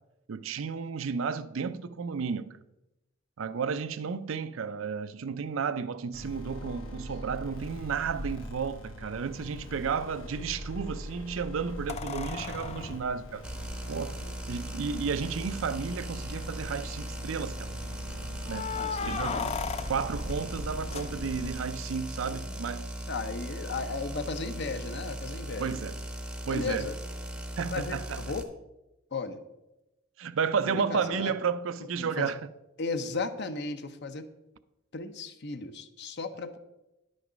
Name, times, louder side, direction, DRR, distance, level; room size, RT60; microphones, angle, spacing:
voice 1, 0.3-2.6 3.4-13.4 13.9-14.2 14.5-17.7 18.5-18.7 19.0-19.5 19.9-22.9 25.6-26.0 26.5-26.9 27.6-28.2 30.2-32.5, right 6 dB, 80° right, 0.5 m, -32 dB
sound 1, 6.1-21.5, equal, 75° left, 1.4 m, -42 dB
voice 2, 6.4-7.0 14.2-14.3 18.7-19.5 22.2-22.6 23.1-25.8 26.4-27.0 27.7-28.5 29.1-29.4 30.6-31.4 32.0-32.3 32.8-34.3 34.9-36.6, left 4 dB, 60° left, 0.8 m, -36 dB
sound 2, 9.6-9.7 11.9-14.3 15.2-15.3 15.6-15.7 16.3-16.8 18.5-21.6 24.1-24.2, left 5 dB, 30° left, 0.4 m, -37 dB
sound 3, 13.4-28.4, right 1 dB, 5° right, 0.7 m, -38 dB
10.5 x 6.3 x 5.1 m
head